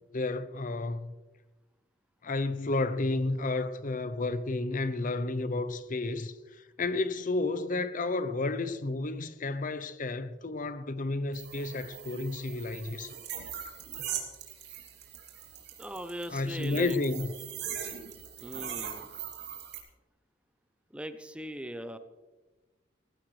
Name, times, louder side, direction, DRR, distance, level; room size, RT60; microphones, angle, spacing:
voice 1, 0.1-1.1 2.2-13.2 16.3-17.3, left 2 dB, 45° left, 0.7 m, -31 dB
sound 1, 11.3-19.8, right 9 dB, 65° right, 2.8 m, -41 dB
voice 2, 15.8-17.0 18.4-19.2 20.9-22.0, equal, 5° right, 0.7 m, -39 dB
19.0 x 15.0 x 3.3 m
head